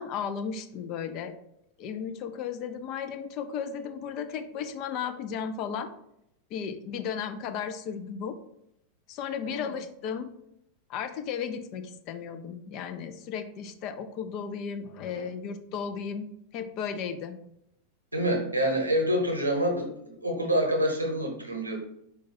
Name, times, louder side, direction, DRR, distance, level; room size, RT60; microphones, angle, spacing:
voice 1, 0.0-1.3 1.8-5.9 6.5-8.4 9.1-10.3 10.9-17.4, left 7 dB, 40° left, 8 dB, 0.4 m, -35 dB
voice 2, 9.4-9.8 15.1-15.2 18.1-21.8, equal, 85° right, 1 dB, 0.9 m, -27 dB
4.6 x 2.3 x 4.1 m, 0.78 s
figure-of-eight pair, 90°, 0 cm